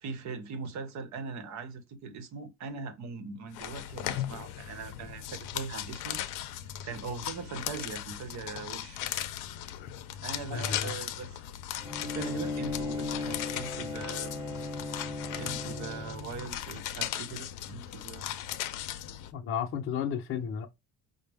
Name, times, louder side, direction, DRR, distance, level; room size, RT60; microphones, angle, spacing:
voice 1, 0.0-6.2 6.8-9.0 10.2-11.4 11.7-14.3 15.4-18.4, right 5 dB, 60° right, 0.9 m, -41 dB
sound 1, 3.5-19.3, left 12 dB, 90° left, 0.5 m, -38 dB
voice 2, 10.5-10.9 19.3-20.7, left 8 dB, 45° left, 0.6 m, -33 dB
Bowed string instrument, 11.8-16.5, left 3 dB, 10° right, 1.0 m, -37 dB
5.1 x 2.0 x 3.4 m
cardioid pair, 150°, 31 cm